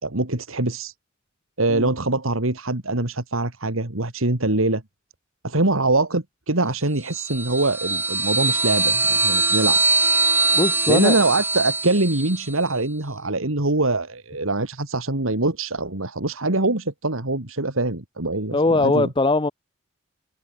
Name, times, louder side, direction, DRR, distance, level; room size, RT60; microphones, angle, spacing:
voice 1, 0.0-0.9 1.6-4.8 5.4-9.8 10.9-19.1, right 2 dB, 90° right, 2.7 m, -23 dB
sound 1, 7.1-12.5, right 3 dB, 10° right, 1.5 m, -22 dB
voice 2, 10.5-11.2 18.5-19.5, left 2 dB, 25° left, 0.8 m, -20 dB
head